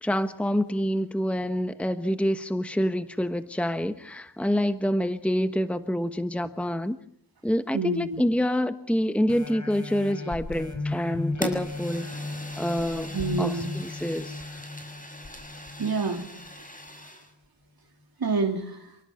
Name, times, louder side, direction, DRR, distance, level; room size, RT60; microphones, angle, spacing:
voice 1, 0.0-7.0 7.4-12.1 12.6-14.4, equal, 5° left, 9 dB, 1.2 m, -27 dB
voice 2, 7.7-8.2 13.1-13.7 15.8-16.3 18.2-19.0, right 4 dB, 60° right, 1 dB, 3.0 m, -27 dB
sound 1, 9.3-16.5 17.0-17.1, left 2 dB, 45° left, 5.8 m, -36 dB
Fire, 11.4-17.3, left 1 dB, 20° left, 7.0 m, -40 dB
29.0 x 18.0 x 5.8 m, 0.72 s
wide cardioid pair, 75°, 41 cm